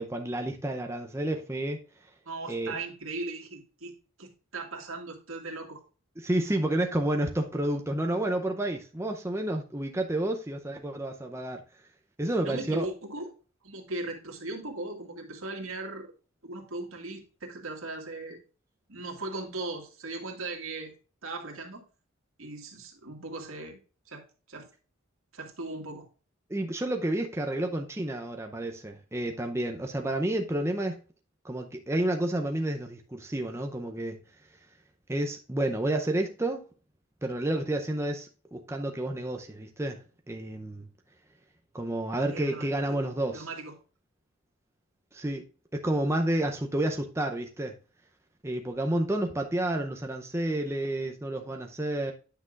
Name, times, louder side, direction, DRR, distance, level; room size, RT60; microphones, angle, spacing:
voice 1, 0.0-1.8 2.5-2.7 6.2-11.6 12.2-12.9 26.5-31.0 31.4-34.2 35.1-36.6 37.2-40.9 41.7-43.5 45.1-45.4 45.7-47.7 48.4-52.1, right 1 dB, 15° right, 0.6 m, -30 dB
voice 2, 2.3-3.9 4.2-5.8 12.4-13.3 13.6-16.1 16.4-18.4 18.9-20.9 21.2-21.8 22.4-23.8 24.1-24.7 25.3-26.1 42.3-43.0 43.3-43.7, right 2 dB, 75° right, 2.0 m, -38 dB
9.8 x 6.0 x 2.4 m
head